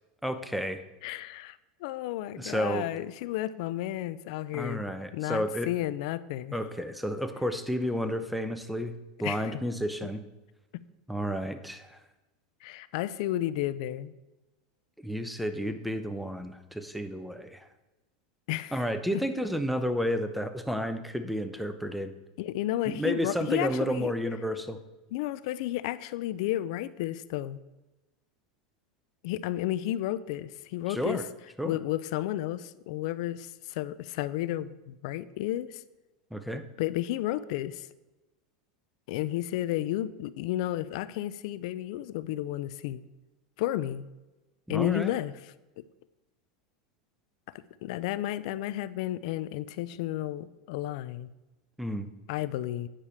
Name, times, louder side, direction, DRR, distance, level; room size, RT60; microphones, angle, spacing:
voice 1, 0.2-0.8 2.4-2.9 4.5-5.7 6.5-10.2 11.1-12.0 15.0-17.7 18.7-22.1 22.9-24.8 30.9-31.2 31.6-31.8 36.3-36.6 44.7-45.2 51.8-52.1, equal, ahead, 9 dB, 0.9 m, -31 dB
voice 2, 1.0-4.8 5.1-6.6 9.2-9.6 12.6-14.1 18.5-19.2 22.4-24.1 25.1-27.6 29.2-31.2 31.6-35.8 36.8-37.9 39.1-43.0 43.6-44.1 44.7-45.3 45.8-45.9 47.5-51.3 52.3-52.9, left 14 dB, 65° left, 16 dB, 0.5 m, -32 dB
9.9 x 5.0 x 7.1 m, 1.1 s
hypercardioid pair, 110°, 4 cm